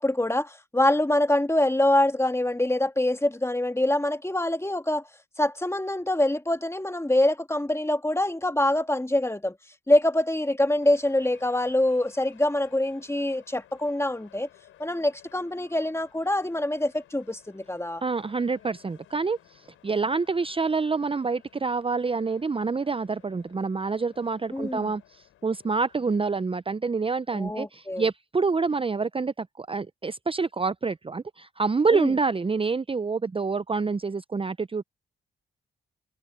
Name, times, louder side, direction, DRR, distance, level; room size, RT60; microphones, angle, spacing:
voice 1, 0.0-5.0 5.4-9.6 9.9-14.5 14.8-18.0 24.5-24.9 27.3-28.1 31.9-32.1, left 1 dB, 15° left, 2.0 m, -25 dB
sound 1, 10.8-26.4, left 12 dB, 85° left, 4.9 m, -57 dB
voice 2, 18.0-34.8, right 4 dB, 25° right, 0.7 m, -27 dB
supercardioid pair, 40°, 20 cm